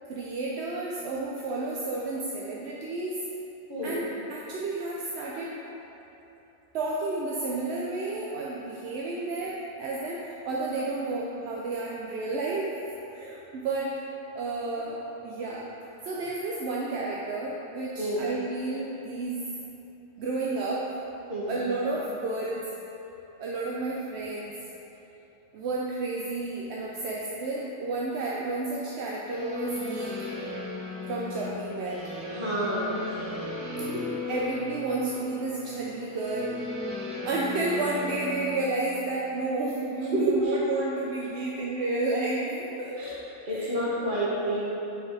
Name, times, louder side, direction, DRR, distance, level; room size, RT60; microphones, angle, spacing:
voice 1, 0.0-3.2 3.8-5.6 6.7-14.0 14.3-15.7 16.0-19.4 20.2-20.9 21.5-22.7 23.4-24.5 25.5-30.1 31.1-32.0 34.3-36.7 37.2-43.0 43.5-43.7, right 2 dB, 65° right, -4 dB, 0.7 m, -31 dB
sound 1, 29.3-38.7, left 2 dB, 10° left, 1.0 m, -36 dB
voice 2, 32.3-32.9 40.1-40.5 43.0-43.2 43.5-44.6, right 1 dB, 35° right, -7 dB, 1.5 m, -28 dB
5.4 x 4.9 x 4.6 m, 3.0 s
omnidirectional pair, 1.5 m